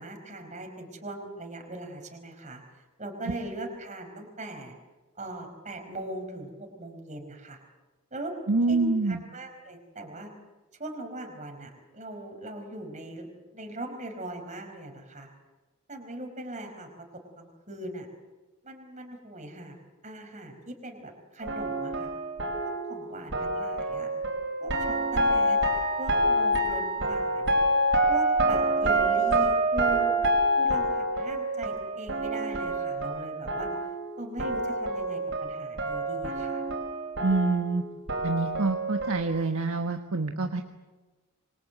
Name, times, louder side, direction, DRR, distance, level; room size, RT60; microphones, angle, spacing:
voice 1, 0.0-2.6 3.0-4.8 5.2-7.6 8.1-8.3 8.7-10.3 10.8-13.3 13.5-15.3 15.9-16.9 17.4-18.1 18.6-19.8 20.0-22.1 22.6-24.1 24.6-25.6 26.0-27.6 28.1-30.1 30.6-33.7 34.2-36.6, right 1 dB, 35° right, 4 dB, 4.7 m, -40 dB
voice 2, 8.5-9.2 37.2-37.8 38.2-40.6, right 3 dB, 75° right, 4 dB, 1.4 m, -26 dB
sound 1, 21.4-34.1 34.4-39.2, right 1 dB, 55° right, 5.0 m, -27 dB
26.5 x 24.0 x 8.1 m, 1.2 s
head